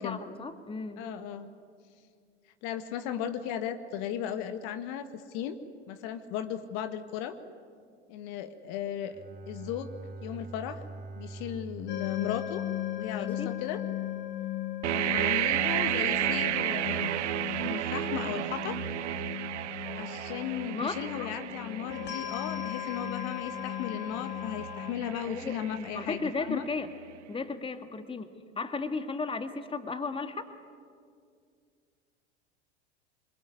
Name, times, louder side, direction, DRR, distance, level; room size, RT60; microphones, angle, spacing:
voice 1, 0.0-1.0 13.1-13.5 20.7-21.0 25.3-27.0 27.3-30.5, left 4 dB, 15° left, 9 dB, 1.8 m, -35 dB
voice 2, 1.0-1.5 2.6-5.6 5.9-7.4 8.1-9.1 9.5-9.9 10.2-10.8 11.2-12.6 13.0-13.8 14.9-17.2 17.6-18.8 19.9-26.6, left 9 dB, 55° left, 9 dB, 1.7 m, -36 dB
Bowed string instrument, 9.0-13.5, right 3 dB, 25° right, 3.1 m, -45 dB
sound 1, 11.9-24.9, left 13 dB, 30° left, 2.1 m, -37 dB
sound 2, 14.8-26.6, right 13 dB, 80° right, 0.6 m, -33 dB
26.5 x 21.5 x 9.8 m, 2.2 s
hypercardioid pair, 85°, 35 cm